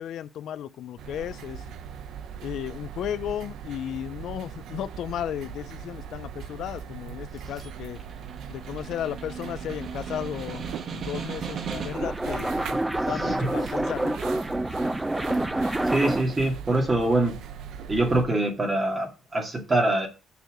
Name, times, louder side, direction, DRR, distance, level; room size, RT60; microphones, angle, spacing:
voice 1, 0.0-1.6 2.4-8.0 8.5-10.7 10.9-12.5 13.0-14.2, left 10 dB, 70° left, 0.5 m, -34 dB
sound 1, 1.0-18.2, right 8 dB, 75° right, 0.8 m, -40 dB
Snare drum, 7.3-12.2, right 6 dB, 50° right, 1.5 m, -38 dB
sound 2, 11.5-16.4, right 1 dB, 10° right, 0.5 m, -28 dB
voice 2, 13.0-13.4 15.8-17.3 17.9-20.1, right 2 dB, 25° right, 2.4 m, -24 dB
7.0 x 4.5 x 6.5 m
cardioid pair, 125°, 0 cm